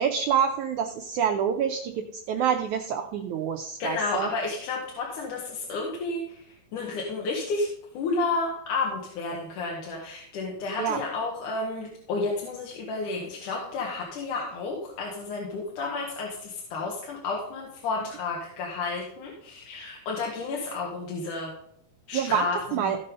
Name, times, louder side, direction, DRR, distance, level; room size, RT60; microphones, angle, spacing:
voice 1, 0.0-4.3 10.8-11.0 22.1-22.5 22.7-23.0, right 8 dB, 85° right, 4 dB, 1.7 m, -27 dB
voice 2, 3.8-7.7 7.9-21.5 22.1-23.0, left 3 dB, 60° left, -2 dB, 2.9 m, -31 dB
16.0 x 5.5 x 5.4 m, 0.69 s
omnidirectional pair, 4.3 m